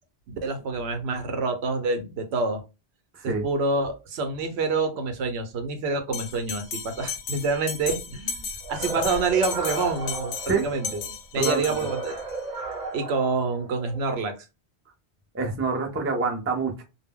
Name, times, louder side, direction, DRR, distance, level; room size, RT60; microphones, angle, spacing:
voice 1, 0.3-2.6 3.4-11.0 11.3-12.2 12.9-14.5, right 3 dB, 80° right, 6 dB, 0.8 m, -27 dB
Bell, 6.1-12.4, left 5 dB, 60° left, 0.6 m, -35 dB
sound 1, 8.6-11.1 11.6-14.1, right 3 dB, 45° right, 0.7 m, -34 dB
voice 2, 11.4-11.8 15.3-16.8, right 4 dB, 20° right, 2 dB, 0.4 m, -26 dB
2.1 x 2.0 x 3.5 m, 0.27 s
omnidirectional pair, 1.1 m